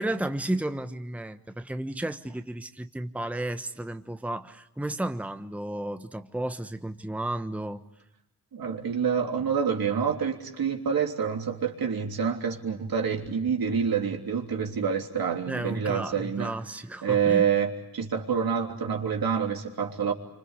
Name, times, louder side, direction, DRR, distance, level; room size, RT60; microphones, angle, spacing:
voice 1, 0.0-7.8 15.5-17.5, right 1 dB, 5° right, 8 dB, 1.1 m, -33 dB
voice 2, 8.5-16.5 17.0-20.1, right 7 dB, 75° right, 3 dB, 3.3 m, -27 dB
27.0 x 25.5 x 8.3 m, 0.86 s
cardioid pair, 80°, 36 cm